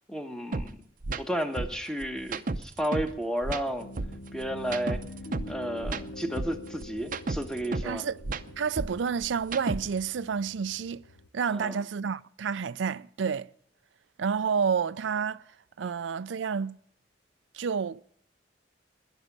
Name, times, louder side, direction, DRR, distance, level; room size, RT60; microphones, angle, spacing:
voice 1, 0.1-0.8 1.2-3.9 4.3-5.0 5.5-8.1 11.5-11.8 15.8-15.9, equal, 5° left, 1.2 m, -32 dB
sound 1, 0.5-0.7 1.0-1.2 1.6-3.1 3.4-5.5 5.8-7.9 8.2-10.1, right 3 dB, 50° right, 0.7 m, -33 dB
Piano, 3.8-11.3, left 1 dB, 65° left, 0.9 m, -45 dB
voice 2, 7.8-8.2 8.6-11.0 11.3-13.5 14.2-15.4 15.8-16.8 17.5-18.0, right 6 dB, 80° right, 0.4 m, -29 dB
12.0 x 11.0 x 7.3 m
head